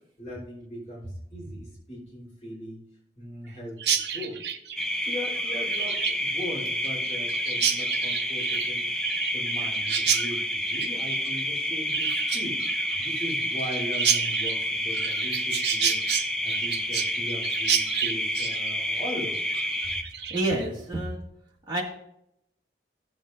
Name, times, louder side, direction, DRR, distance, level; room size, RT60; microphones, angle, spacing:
voice 1, 0.2-2.8 3.2-4.4 5.0-8.9 9.3-12.6 13.0-19.4, equal, 40° left, -5 dB, 3.5 m, -39 dB
Chirp tweet, 3.8-20.7, right 8 dB, 75° right, 0.8 m, -30 dB
sound 1, 4.8-20.0, left 1 dB, 5° left, 0.6 m, -29 dB
voice 2, 20.3-21.2 21.7-21.8, right 1 dB, 25° right, -4 dB, 2.1 m, -28 dB
15.0 x 7.3 x 2.6 m, 0.77 s
head